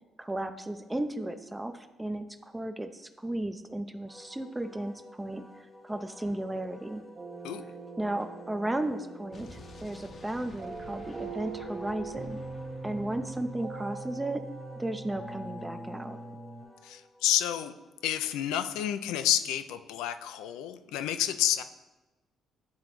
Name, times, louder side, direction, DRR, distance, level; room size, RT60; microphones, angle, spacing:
voice 1, 0.2-5.4 5.8-7.0 8.0-12.4 12.8-14.4 14.8-16.2, right 1 dB, 10° right, 8 dB, 0.4 m, -34 dB
Wind instrument woodwind instrument, 4.1-18.8, left 1 dB, 15° left, 0.9 m, -53 dB
sound 1, 7.1-16.6, right 3 dB, 40° right, 1.4 m, -42 dB
Explosion, 9.3-14.1, left 3 dB, 50° left, 0.7 m, -51 dB
voice 2, 16.8-17.7 18.0-21.6, left 11 dB, 90° left, 10 dB, 0.3 m, -29 dB
9.4 x 3.8 x 3.0 m, 1.1 s
supercardioid pair, 80°, 0 cm